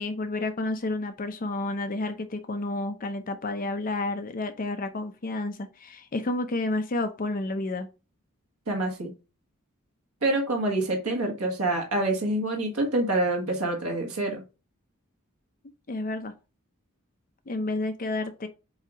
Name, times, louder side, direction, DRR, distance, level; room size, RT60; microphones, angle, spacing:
voice 1, 0.0-7.9 15.9-16.3 17.5-18.5, left 2 dB, 40° left, 8 dB, 0.6 m, -30 dB
voice 2, 8.7-9.1 10.2-14.4, right 2 dB, 75° right, 1 dB, 1.7 m, -26 dB
8.0 x 2.8 x 4.9 m, 0.29 s
head